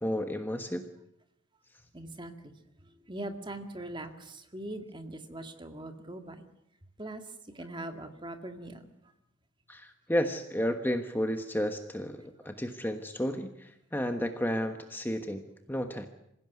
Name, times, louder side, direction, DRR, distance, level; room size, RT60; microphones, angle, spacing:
voice 1, 0.0-0.9 9.7-15.4 15.7-16.1, equal, 10° left, 6 dB, 1.3 m, -32 dB
voice 2, 1.9-6.5 7.0-9.1, right 1 dB, 25° right, 6 dB, 2.0 m, -42 dB
26.5 x 16.5 x 9.5 m, 0.81 s
head